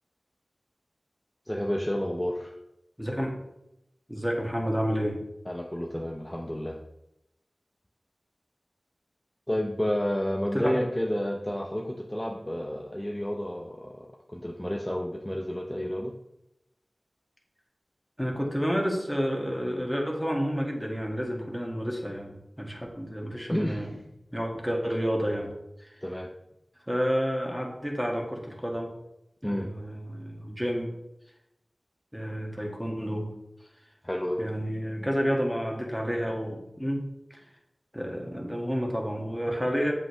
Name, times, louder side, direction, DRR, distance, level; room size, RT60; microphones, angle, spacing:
voice 1, 1.5-2.5 5.5-6.8 9.5-16.1 23.5-23.8 26.0-26.3 29.4-29.7 34.0-34.4, equal, 15° left, 0 dB, 0.8 m, -30 dB
voice 2, 3.0-3.4 4.1-5.2 10.5-10.8 18.2-23.9 24.3-25.5 25.8-25.9 26.9-28.9 29.4-30.9 32.1-33.3 34.4-37.0 37.3-37.4 37.9-39.9, equal, 5° right, 0 dB, 2.0 m, -30 dB
8.0 x 7.8 x 3.2 m, 0.85 s
wide cardioid pair, 55°, 0 cm